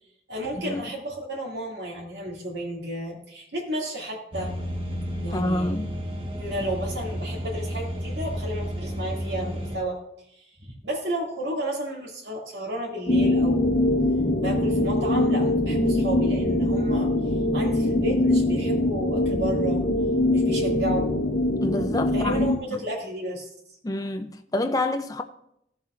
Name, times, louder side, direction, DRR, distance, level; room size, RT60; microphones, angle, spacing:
voice 1, 0.3-4.5 5.2-5.8 6.4-10.0 10.3-13.8 14.4-17.1 17.5-19.8 20.3-21.1 22.1-23.5, right 1 dB, 75° right, 2.3 m, -32 dB
sound 1, 4.3-9.8, equal, 30° right, 1.2 m, -32 dB
voice 2, 5.3-5.9 21.6-22.4 22.7-22.8 23.8-25.2, left 1 dB, 20° left, 0.4 m, -27 dB
sound 2, 13.1-22.6, left 1 dB, 55° left, 1.1 m, -23 dB
16.5 x 7.2 x 2.5 m
head